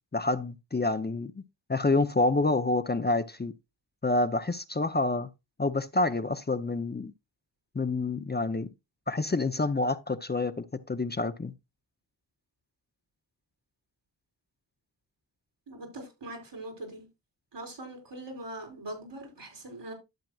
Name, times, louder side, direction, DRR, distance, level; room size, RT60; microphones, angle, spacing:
voice 1, 0.1-1.3 1.7-3.5 4.0-5.3 5.6-7.1 7.7-8.7 9.1-11.5, left 2 dB, 25° left, 0.6 m, -28 dB
voice 2, 15.7-17.1 17.5-19.9, right 1 dB, 80° right, 4.6 m, -41 dB
12.0 x 7.5 x 2.3 m
cardioid pair, 55°, 42 cm